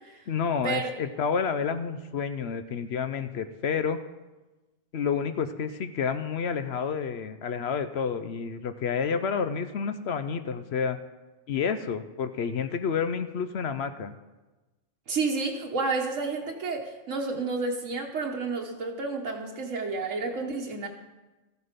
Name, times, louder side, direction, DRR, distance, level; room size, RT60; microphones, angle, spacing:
voice 1, 0.3-4.0 4.9-11.0 11.5-14.1, left 6 dB, 60° left, 10 dB, 0.8 m, -29 dB
voice 2, 15.1-20.9, right 3 dB, 80° right, 0 dB, 1.4 m, -30 dB
14.5 x 8.1 x 5.1 m, 1.1 s
omnidirectional pair, 1.3 m